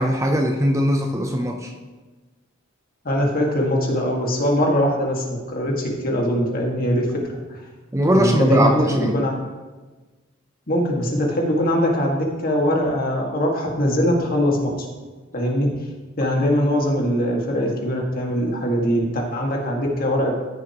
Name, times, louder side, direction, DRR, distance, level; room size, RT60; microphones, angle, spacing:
voice 1, 0.0-1.7 7.9-9.2, equal, 15° right, 3 dB, 0.6 m, -20 dB
voice 2, 3.0-7.1 7.5-7.6 8.1-9.4 10.7-14.9 15.3-15.7 16.2-20.3, equal, 45° left, -1 dB, 1.9 m, -22 dB
15.0 x 6.8 x 3.0 m, 1.3 s
head